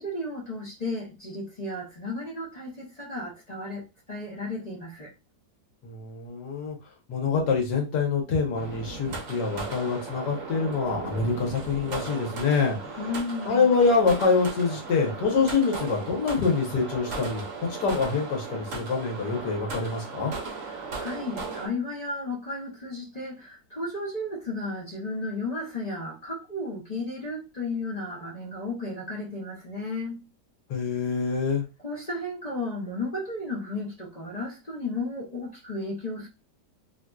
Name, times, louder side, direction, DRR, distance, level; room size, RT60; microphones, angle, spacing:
voice 1, 0.0-5.1 13.0-13.7 20.6-30.2 31.8-36.3, left 2 dB, 45° left, 0.5 m, -34 dB
voice 2, 5.8-6.8 7.1-13.0 13.4-17.4 17.7-20.3 30.7-31.6, left 4 dB, 75° left, 1.5 m, -25 dB
sound 1, 8.5-21.7, right 4 dB, 55° right, 0.9 m, -37 dB
3.2 x 2.6 x 2.2 m
omnidirectional pair, 1.8 m